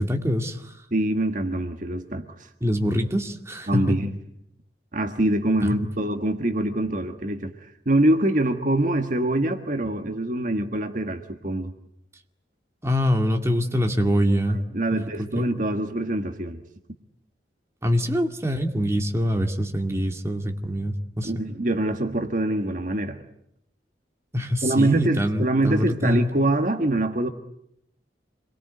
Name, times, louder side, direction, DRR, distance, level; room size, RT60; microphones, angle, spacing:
voice 1, 0.0-0.7 2.6-3.9 5.7-5.9 12.8-14.6 14.9-15.1 15.4-15.5 17.8-21.3 24.3-26.3, equal, 15° right, 4 dB, 2.2 m, -24 dB
voice 2, 0.9-2.5 3.7-4.2 4.9-11.7 14.5-16.6 21.2-23.2 24.6-27.3, right 1 dB, 45° right, 6 dB, 1.5 m, -24 dB
27.5 x 22.5 x 9.4 m, 0.77 s
head